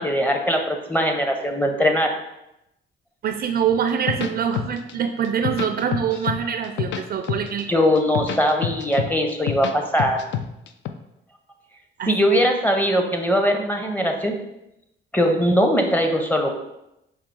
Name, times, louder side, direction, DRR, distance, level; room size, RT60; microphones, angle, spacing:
voice 1, 0.0-2.1 7.7-10.2 12.1-14.3 15.1-16.5, equal, 10° left, 3 dB, 0.6 m, -20 dB
voice 2, 3.2-7.9 12.0-12.1, right 8 dB, 50° right, 7 dB, 0.4 m, -24 dB
sound 1, 3.9-4.9 5.2-6.4 6.6-7.6 8.0-9.7 10.0-10.9, left 9 dB, 65° left, 0.4 m, -27 dB
4.6 x 2.3 x 4.6 m, 0.87 s
cardioid pair, 90°, 20 cm